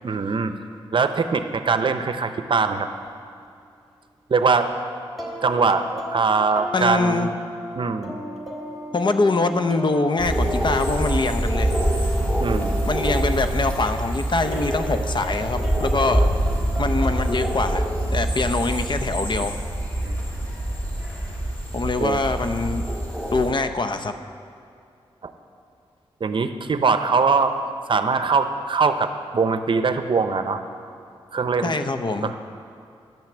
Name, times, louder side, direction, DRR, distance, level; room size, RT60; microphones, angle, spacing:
voice 1, 0.0-0.5 0.9-2.9 4.3-4.7 5.4-7.3 7.8-8.2 12.4-12.9 20.0-20.1 22.0-22.2 25.2-25.3 26.2-27.5 27.9-30.6 31.3-31.7 32.2-32.4, right 4 dB, 55° right, 9 dB, 0.6 m, -22 dB
sound 1, 3.1-3.2 5.2-14.1 14.5-17.7, equal, ahead, 1.9 m, -36 dB
voice 2, 6.7-7.3 8.9-11.7 12.0-12.1 12.8-16.3 16.8-17.8 18.1-19.6 21.7-22.9 23.3-24.1 31.6-32.3, left 3 dB, 50° left, 8 dB, 0.7 m, -24 dB
sound 2, 10.2-23.5, right 1 dB, 20° left, 3.2 m, -25 dB
10.5 x 5.8 x 7.8 m, 2.4 s
cardioid pair, 60°, 10 cm